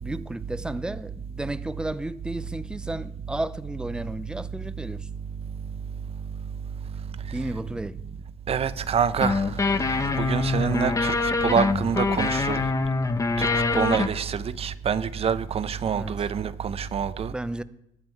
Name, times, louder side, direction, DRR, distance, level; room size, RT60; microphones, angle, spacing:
voice 1, 0.0-5.1 7.3-8.0 15.9-16.3 17.3-17.6, right 1 dB, 5° right, 0.5 m, -33 dB
voice 2, 8.5-9.4 10.2-12.6 13.4-17.3, right 7 dB, 40° right, 0.7 m, -26 dB
sound 1, 9.1-14.1, left 3 dB, 20° left, 0.8 m, -24 dB
20.0 x 7.6 x 4.6 m
cardioid pair, 110°, 16 cm